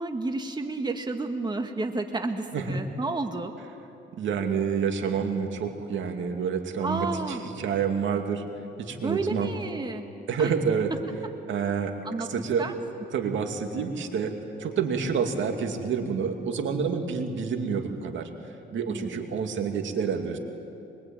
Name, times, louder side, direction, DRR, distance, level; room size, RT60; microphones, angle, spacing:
voice 1, 0.0-3.5 6.8-7.4 9.0-10.1 10.4-10.5 12.0-12.3 12.6-12.7 18.9-19.2, right 2 dB, 20° right, 5 dB, 1.7 m, -31 dB
voice 2, 4.2-8.4 8.8-9.5 10.3-10.9 11.5-12.7 13.1-18.3 18.7-20.4, right 6 dB, 70° right, 5 dB, 2.5 m, -28 dB
24.5 x 22.5 x 8.9 m, 2.8 s
cardioid pair, 90°, 20 cm